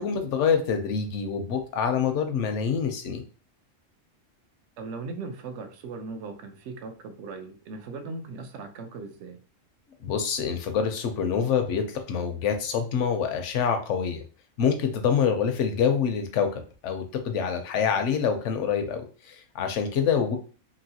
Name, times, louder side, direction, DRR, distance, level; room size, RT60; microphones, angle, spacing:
voice 1, 0.0-3.2 10.0-14.2 14.6-20.4, left 7 dB, 65° left, 0.9 m, -26 dB
voice 2, 4.8-9.4, right 4 dB, 65° right, 0.8 m, -38 dB
3.0 x 2.7 x 2.7 m
omnidirectional pair, 1.4 m